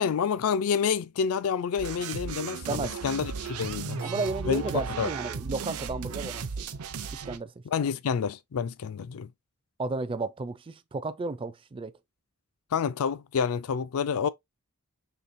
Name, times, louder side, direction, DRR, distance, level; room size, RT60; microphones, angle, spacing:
voice 1, 0.0-4.0 4.5-4.6 5.0-5.1 7.7-9.3 12.7-14.3, left 6 dB, 65° left, 0.4 m, -28 dB
sound 1, 1.8-7.4, right 6 dB, 70° right, 0.6 m, -35 dB
voice 2, 2.7-3.0 4.0-6.4 7.1-7.5 9.8-11.9, right 3 dB, 25° right, 0.4 m, -33 dB
5.8 x 3.1 x 2.6 m
head